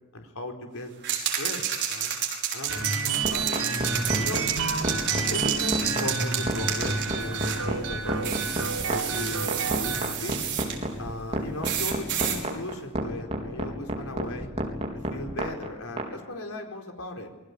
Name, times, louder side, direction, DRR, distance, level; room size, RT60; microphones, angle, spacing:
voice 1, 0.1-2.2 2.5-4.5 5.2-8.4 8.8-10.5 11.0-14.5 14.9-17.3, left 1 dB, 80° left, 3 dB, 4.4 m, -37 dB
sound 1, 1.0-7.7 8.2-10.8 11.6-12.4, right 9 dB, 55° right, 5.6 m, -31 dB
sound 2, 2.7-10.0, right 4 dB, 80° right, 4.8 m, -30 dB
sound 3, 3.2-16.1, right 1 dB, 30° right, 4.1 m, -29 dB
27.5 x 21.5 x 8.6 m, 1.0 s
head